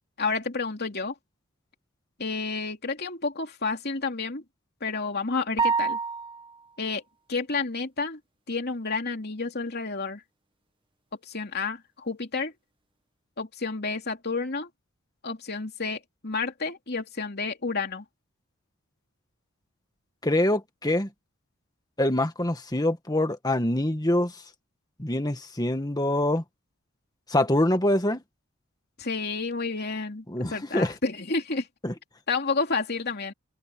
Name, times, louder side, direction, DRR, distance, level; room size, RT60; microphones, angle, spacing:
voice 1, 0.2-1.1 2.2-4.4 4.8-6.0 6.8-7.0 7.3-8.2 8.5-10.2 11.2-12.5 13.4-14.7 15.2-18.0 29.0-30.2 30.5-31.7 32.3-33.3, left 4 dB, 50° left, 3.0 m, -30 dB
sound 1, 5.6-6.6, right 4 dB, 25° right, 1.5 m, -26 dB
voice 2, 20.2-21.1 22.0-24.3 25.0-26.4 27.3-28.2 30.3-30.9 31.8-31.9, left 1 dB, 20° left, 1.7 m, -25 dB
head